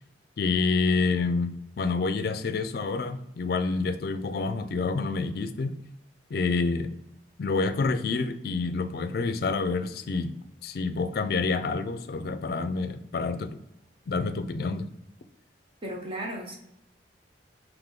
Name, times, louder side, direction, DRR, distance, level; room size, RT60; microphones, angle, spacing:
voice 1, 0.4-5.8 6.3-6.9 7.4-10.3 10.6-13.6 14.1-14.9, left 4 dB, 55° left, 10 dB, 0.3 m, -28 dB
voice 2, 15.8-16.6, right 1 dB, 30° right, 0 dB, 0.6 m, -35 dB
3.5 x 3.0 x 3.6 m, 0.82 s
head